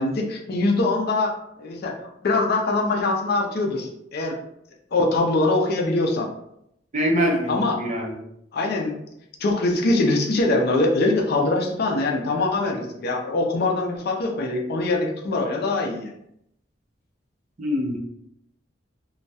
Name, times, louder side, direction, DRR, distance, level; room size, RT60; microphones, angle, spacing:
voice 1, 0.0-2.0 2.2-4.3 4.9-6.3 7.5-7.8 8.5-9.0 9.4-16.1, left 2 dB, 55° left, 1 dB, 0.4 m, -23 dB
voice 2, 6.9-8.1 17.6-18.0, equal, 40° right, 0 dB, 0.5 m, -24 dB
2.2 x 2.1 x 2.6 m, 0.75 s
head